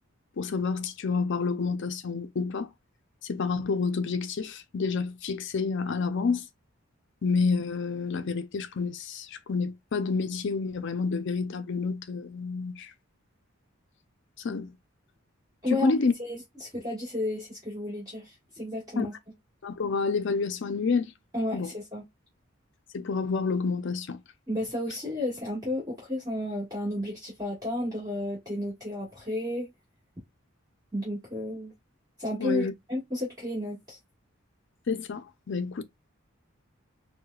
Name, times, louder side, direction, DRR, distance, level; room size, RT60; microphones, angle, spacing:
voice 1, 0.4-2.7 3.2-6.4 7.2-12.9 14.4-14.7 15.7-16.1 19.0-19.1 19.6-21.1 21.5-21.7 22.9-24.2 32.4-32.7 34.9-35.8, left 4 dB, 60° left, 0.5 m, -29 dB
voice 2, 16.2-19.1 21.3-22.0 24.5-29.7 30.9-31.7 32.2-34.0, left 1 dB, 20° right, 1.6 m, -32 dB
4.6 x 2.2 x 2.3 m
head